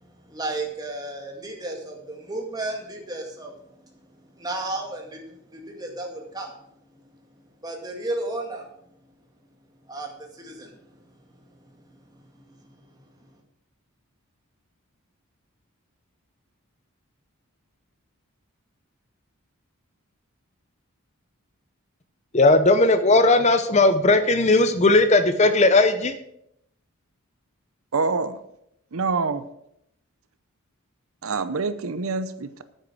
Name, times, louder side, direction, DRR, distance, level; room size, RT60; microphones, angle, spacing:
voice 1, 0.3-3.5 4.4-6.5 7.6-8.7 9.9-10.8 12.3-12.8, right 2 dB, 15° right, 1 dB, 2.0 m, -33 dB
voice 2, 22.3-26.1, left 2 dB, 30° left, 10 dB, 0.7 m, -17 dB
voice 3, 27.9-28.4 28.9-29.4 31.2-32.6, right 4 dB, 70° right, 12 dB, 0.7 m, -26 dB
9.1 x 9.1 x 6.1 m, 0.76 s
head